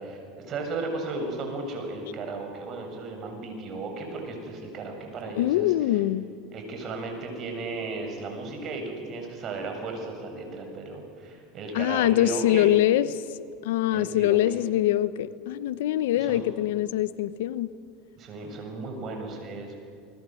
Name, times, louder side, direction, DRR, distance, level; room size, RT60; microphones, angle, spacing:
voice 1, 0.0-5.7 6.5-12.7 13.9-14.6 16.1-16.4 18.2-19.7, right 3 dB, 45° right, 3 dB, 7.5 m, -35 dB
voice 2, 5.3-6.2 11.7-13.1 13.6-17.7, left 13 dB, 80° left, 16 dB, 0.9 m, -23 dB
29.0 x 21.0 x 7.8 m, 2.3 s
supercardioid pair, 105°, 0 cm